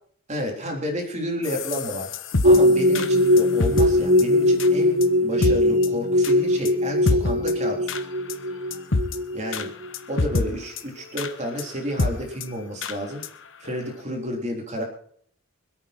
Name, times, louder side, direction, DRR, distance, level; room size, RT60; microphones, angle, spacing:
voice 1, 0.3-2.1 2.4-8.0 8.5-8.6 9.3-9.7 10.1-13.2 13.6-14.8, equal, 35° right, 1 dB, 3.8 m, -31 dB
sound 1, 1.4-3.9 4.2-4.3 4.6-4.7 5.0-5.1 5.4-5.5 5.8-5.9 6.2-6.3 6.6-6.7 7.1-7.5 7.9-8.0 8.3-8.4 8.7-9.2 9.5-9.7 9.9-10.5 10.8-10.9 11.2-11.3 11.6-11.7 12.0-12.1 12.4-12.5 12.8-12.9 13.2-13.3 13.7-13.8, left 3 dB, 60° left, 1.1 m, -25 dB
sound 2, 2.4-9.9 10.2-10.3, left 1 dB, 70° right, 1.2 m, -20 dB
26.0 x 8.8 x 4.4 m, 0.62 s
head